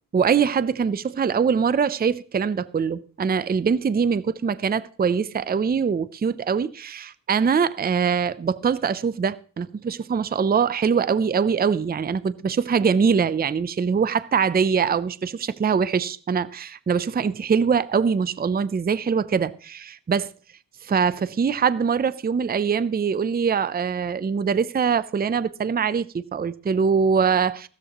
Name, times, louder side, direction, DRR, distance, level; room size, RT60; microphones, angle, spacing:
voice 1, 0.1-20.3 20.9-27.7, right 6 dB, 20° right, 0.5 m, -23 dB
15.5 x 13.5 x 3.0 m
wide cardioid pair, 105°, 42 cm